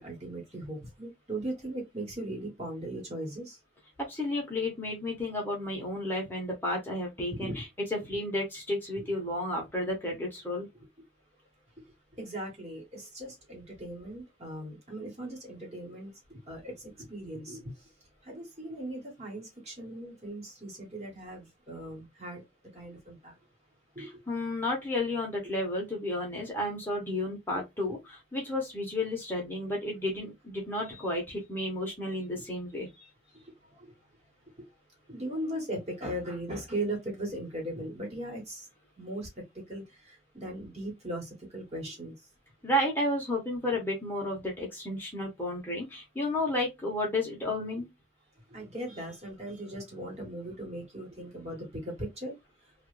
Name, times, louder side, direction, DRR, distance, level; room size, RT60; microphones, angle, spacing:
voice 1, 0.0-3.6 7.3-7.6 9.0-9.1 12.1-17.9 18.2-22.4 22.7-23.3 23.9-24.1 30.8-31.0 32.3-32.4 32.9-33.9 34.6-34.7 35.1-38.7 39.0-42.1 48.5-52.4, right 1 dB, 35° right, 1.4 m, -39 dB
voice 2, 4.1-7.7 8.0-10.7 24.0-32.9 42.6-47.9, left 1 dB, 10° left, 1.0 m, -32 dB
3.0 x 2.4 x 3.2 m
head